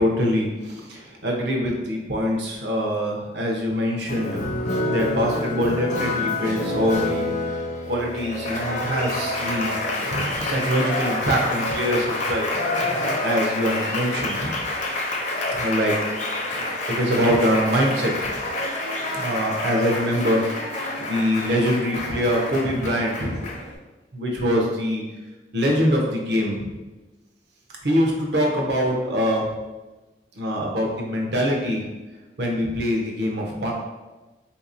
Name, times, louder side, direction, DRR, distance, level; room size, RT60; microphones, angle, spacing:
voice 1, 0.0-9.8 10.3-12.5 13.2-14.5 15.5-16.0 16.9-18.4 18.7-18.8 19.1-23.5 24.1-25.0 25.5-26.7 27.8-29.5 30.4-31.8 32.4-33.7, equal, 70° right, 0 dB, 0.7 m, -24 dB
Applause, 4.1-23.8, left 2 dB, 45° left, 0.5 m, -28 dB
3.5 x 2.8 x 2.5 m, 1.2 s
head